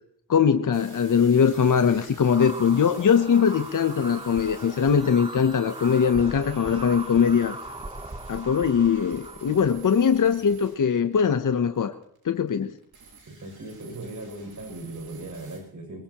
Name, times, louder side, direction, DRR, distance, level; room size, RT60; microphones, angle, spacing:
voice 1, 0.3-7.6 8.3-11.9 12.2-12.7, left 7 dB, 60° left, 9 dB, 0.8 m, -21 dB
sound 1, 0.7-15.6, right 4 dB, 85° right, 6.4 m, -50 dB
sound 2, 2.2-10.3, right 2 dB, 15° right, 0.9 m, -40 dB
voice 2, 13.3-16.0, right 2 dB, 55° right, 2 dB, 6.9 m, -38 dB
22.5 x 21.5 x 3.0 m, 0.69 s
wide cardioid pair, 130°, 36 cm